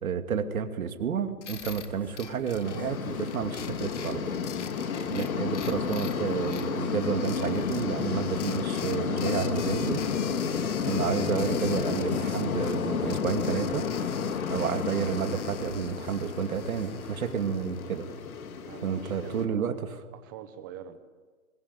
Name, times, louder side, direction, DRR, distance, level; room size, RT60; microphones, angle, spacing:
voice 1, 0.0-4.3 5.1-10.0 10.9-13.9 14.5-18.1 18.8-19.7, right 7 dB, 70° right, 7 dB, 2.5 m, -30 dB
sound 1, 1.4-18.4, left 8 dB, 50° left, 1.7 m, -45 dB
sound 2, 1.5-17.5, equal, 5° left, 3.0 m, -53 dB
sound 3, 2.6-19.5, left 6 dB, 70° left, 2.3 m, -31 dB
voice 2, 18.6-19.8 20.1-21.0, right 9 dB, 15° right, 9 dB, 0.9 m, -44 dB
22.5 x 20.0 x 9.8 m, 1.4 s
hypercardioid pair, 165°, 44 cm